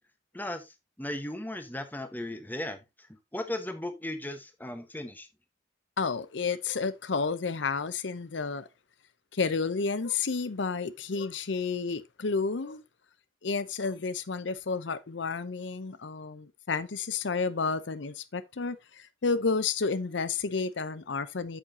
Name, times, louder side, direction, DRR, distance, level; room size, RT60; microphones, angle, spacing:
voice 1, 0.3-0.7 1.0-2.8 3.3-5.3, left 1 dB, 10° left, 1.2 m, -36 dB
voice 2, 6.0-8.7 9.3-12.8 13.4-21.6, left 4 dB, 75° left, 0.7 m, -31 dB
8.9 x 7.4 x 2.7 m
head